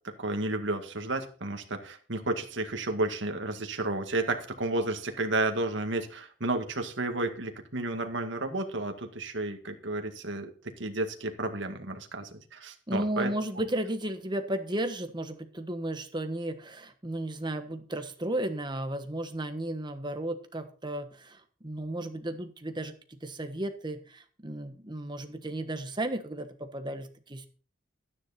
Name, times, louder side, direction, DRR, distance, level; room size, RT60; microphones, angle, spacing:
voice 1, 0.2-13.3, right 2 dB, 65° right, 5 dB, 2.0 m, -32 dB
voice 2, 12.9-27.5, right 1 dB, 20° right, 8 dB, 1.3 m, -34 dB
13.0 x 9.9 x 4.2 m, 0.40 s
head